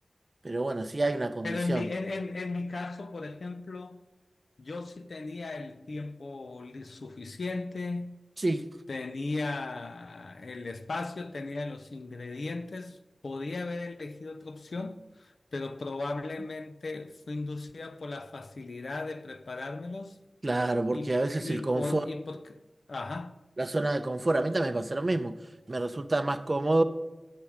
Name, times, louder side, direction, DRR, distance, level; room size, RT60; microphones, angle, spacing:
voice 1, 0.4-1.9 8.4-8.6 20.4-22.0 23.6-25.4 25.7-26.8, right 2 dB, 40° right, 0.6 m, -28 dB
voice 2, 1.4-4.0 4.6-8.2 8.9-13.0 13.2-20.2 20.9-22.6 22.9-23.4, left 3 dB, 80° left, 0.6 m, -36 dB
10.0 x 7.7 x 5.0 m
wide cardioid pair, 80°, 0 cm